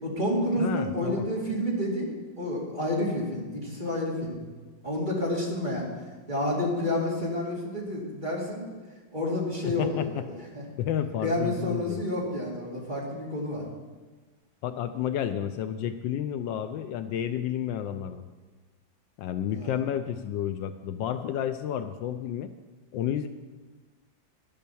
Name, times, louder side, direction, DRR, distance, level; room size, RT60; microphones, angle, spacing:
voice 1, 0.0-4.4 4.8-5.9 6.3-8.6 9.1-10.6 11.2-13.6 19.5-19.7, left 1 dB, 25° right, -3 dB, 2.3 m, -29 dB
voice 2, 0.6-1.2 9.7-10.3 10.8-12.0 14.6-18.3 19.2-22.5 22.9-23.3, left 10 dB, 75° left, 9 dB, 1.2 m, -31 dB
11.0 x 7.5 x 6.9 m, 1.3 s
omnidirectional pair, 2.1 m